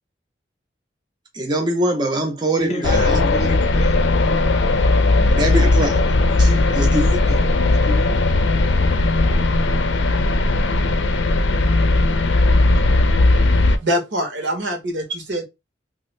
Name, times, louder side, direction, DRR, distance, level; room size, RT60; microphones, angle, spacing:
voice 1, 1.3-3.5 5.3-7.4, right 1 dB, 25° right, 0.5 m, -24 dB
voice 2, 2.4-4.4 6.4-6.9 7.7-8.4, equal, 35° left, 0.7 m, -31 dB
sound 1, 2.8-13.8, left 2 dB, 75° left, 0.5 m, -17 dB
voice 3, 13.8-15.4, equal, 75° right, 1.0 m, -24 dB
3.0 x 2.4 x 3.1 m
head